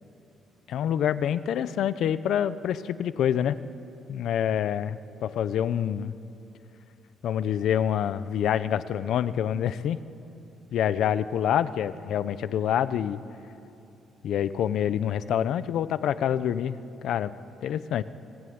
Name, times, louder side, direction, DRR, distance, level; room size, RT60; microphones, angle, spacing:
voice 1, 0.7-3.6 4.1-6.1 7.2-10.0 10.7-13.2 14.2-16.8 17.0-17.3 17.6-18.0, left 9 dB, 70° left, 14 dB, 0.9 m, -26 dB
29.0 x 19.5 x 9.7 m, 2.8 s
cardioid pair, 120°, 0 cm